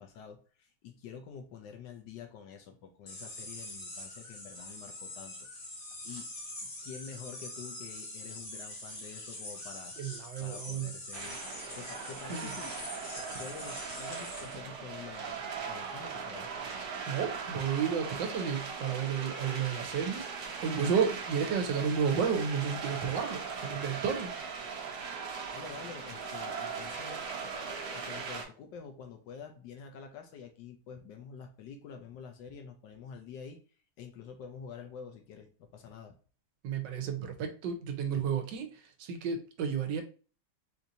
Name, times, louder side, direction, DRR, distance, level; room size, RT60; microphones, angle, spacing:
voice 1, 0.0-5.4 6.0-6.3 6.8-9.9 10.4-11.4 11.7-12.7 13.4-16.5 25.5-27.3 27.9-33.6 34.0-36.1, left 6 dB, 80° left, 1.3 m, -47 dB
sound 1, 3.1-14.6, left 1 dB, 40° left, 0.9 m, -44 dB
voice 2, 10.0-10.9 12.3-12.5 17.1-24.3 36.6-40.0, right 6 dB, 90° right, 1.4 m, -32 dB
sound 2, 11.1-28.4, right 5 dB, 65° right, 1.2 m, -39 dB
4.4 x 2.6 x 2.6 m
omnidirectional pair, 1.9 m